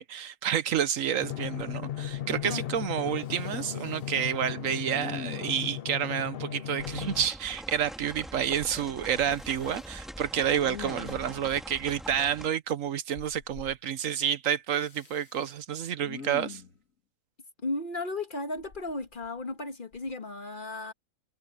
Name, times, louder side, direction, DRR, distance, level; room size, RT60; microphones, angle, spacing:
voice 1, 0.0-16.6, right 9 dB, 75° right, 1.2 m, -29 dB
Drum, 1.2-7.3, left 11 dB, 55° left, 0.8 m, -36 dB
Respiratory sounds, 1.8-1.9 2.1-2.9 3.2-4.2 4.9-5.7 9.3-9.9 10.5-11.6 13.1-13.8 14.8-15.5 16.0-16.8 18.6-19.5 19.9-20.1, left 6 dB, 75° left, 2.0 m, -45 dB
sound 1, 6.8-12.5, equal, ahead, 2.3 m, -43 dB
voice 2, 17.6-20.9, left 2 dB, 40° left, 1.6 m, -35 dB
omnidirectional pair, 1.4 m